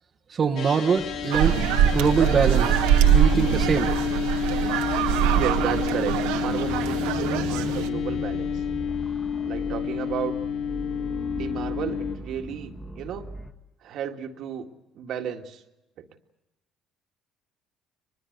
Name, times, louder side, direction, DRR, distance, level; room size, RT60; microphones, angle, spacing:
voice 1, 0.3-1.6 1.8-2.8 3.1-3.9, right 6 dB, 45° right, 3 dB, 1.3 m, -23 dB
sound 1, 0.6-12.2, left 8 dB, 65° left, 2.3 m, -29 dB
sound 2, 1.0-13.5, equal, ahead, 1.8 m, -38 dB
sound 3, 1.3-7.9, right 10 dB, 90° right, 1.4 m, -23 dB
voice 2, 5.3-8.6 9.4-10.4 11.3-13.3 13.8-14.7 15.0-15.6 16.0-16.1, right 8 dB, 65° right, 5 dB, 1.9 m, -33 dB
23.5 x 21.0 x 8.0 m, 0.96 s
supercardioid pair, 80°, 0 cm